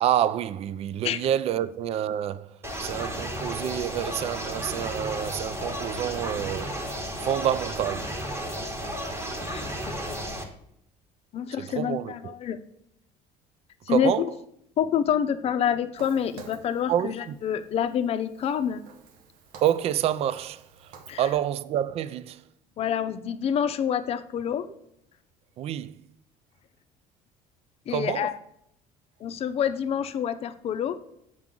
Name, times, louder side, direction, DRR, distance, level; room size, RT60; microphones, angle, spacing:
voice 1, 0.0-6.7 7.2-8.1 11.6-12.3 13.9-14.3 16.9-17.4 19.6-22.4 25.6-26.0 27.9-28.3, right 10 dB, 45° right, 0.4 m, -28 dB
sound 1, 2.6-10.4, equal, 15° right, 1.2 m, -33 dB
voice 2, 9.4-10.3 11.3-12.6 13.9-14.3 14.8-18.8 21.1-21.2 22.8-24.7 27.9-28.4 29.2-31.0, left 8 dB, 45° left, 0.6 m, -27 dB
Walk footsteps, 16.0-21.3, right 5 dB, 85° right, 1.0 m, -50 dB
7.5 x 6.0 x 3.7 m
cardioid pair, 130°, 15 cm